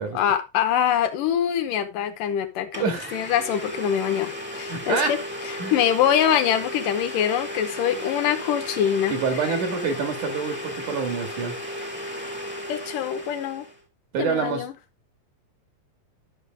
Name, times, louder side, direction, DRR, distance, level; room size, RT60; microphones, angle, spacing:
voice 1, 0.1-5.2 5.5-9.1 12.7-13.7 14.2-14.7, left 9 dB, 75° left, 2.5 m, -24 dB
Domestic sounds home sounds, 2.3-2.4 2.7-13.8, equal, 5° right, 1.3 m, -34 dB
voice 2, 2.8-3.2 4.7-5.3 5.6-5.8 9.1-11.6 14.1-14.6, right 5 dB, 65° right, 3.3 m, -27 dB
11.0 x 6.3 x 3.5 m
omnidirectional pair, 4.0 m